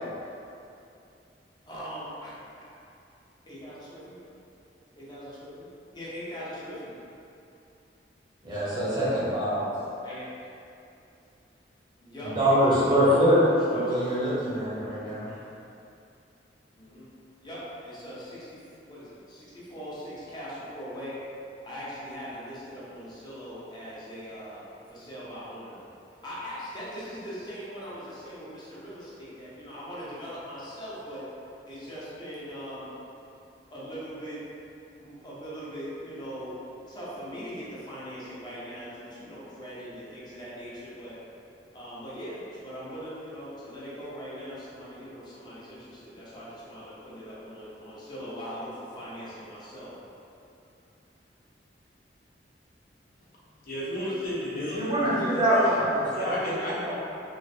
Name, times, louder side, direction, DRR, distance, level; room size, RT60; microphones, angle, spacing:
voice 1, 1.7-2.7 3.5-4.2 4.9-6.9 10.0-10.3 12.0-13.4 13.7-14.1 16.8-17.1 17.4-21.2 21.6-24.6 24.9-25.8 26.2-31.2 31.7-32.9 33.7-34.4 35.0-36.6 36.9-41.2 41.7-49.9, equal, 25° left, -9 dB, 0.7 m, -40 dB
voice 2, 8.4-9.7 12.4-13.4 13.7-15.3 54.7-56.9, equal, 25° right, -10 dB, 0.8 m, -24 dB
voice 3, 53.6-55.8 56.1-56.9, left 1 dB, 55° left, -8 dB, 0.7 m, -34 dB
3.1 x 2.5 x 2.6 m, 2.7 s
head